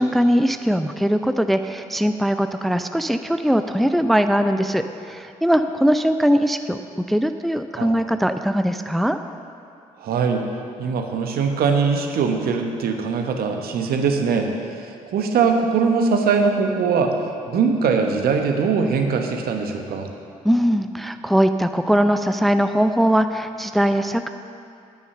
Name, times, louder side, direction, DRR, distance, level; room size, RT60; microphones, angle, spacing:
voice 1, 0.0-6.8 7.1-9.2 20.4-24.3, equal, ahead, 8 dB, 0.5 m, -20 dB
voice 2, 10.0-10.4 10.8-14.5 14.8-20.1, right 5 dB, 60° right, 4 dB, 1.2 m, -21 dB
9.6 x 8.6 x 6.6 m, 2.5 s
figure-of-eight pair, 45°, 18 cm